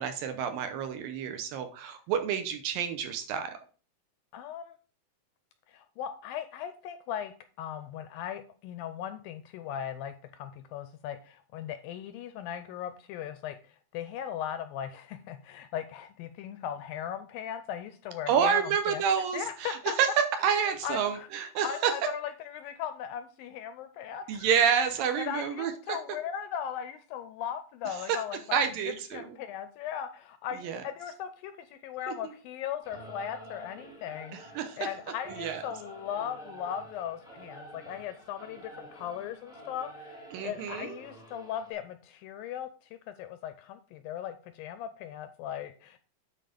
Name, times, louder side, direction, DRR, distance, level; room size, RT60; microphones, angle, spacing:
voice 1, 0.0-3.6 18.3-20.1 20.4-21.9 24.3-26.0 28.1-28.2 28.5-29.4 30.6-30.8 32.1-32.3 34.3-34.9 35.3-35.6 40.3-41.0, right 7 dB, 75° right, 8 dB, 2.4 m, -29 dB
voice 2, 4.3-4.8 5.7-19.0 19.3-19.9 20.8-21.3 21.6-24.5 25.2-28.6 29.1-42.7 43.1-46.0, left 9 dB, 85° left, 11 dB, 2.2 m, -38 dB
Singing / Musical instrument, 32.8-41.7, right 1 dB, 5° right, 0.3 m, -49 dB
9.3 x 4.5 x 5.1 m, 0.38 s
omnidirectional pair, 4.5 m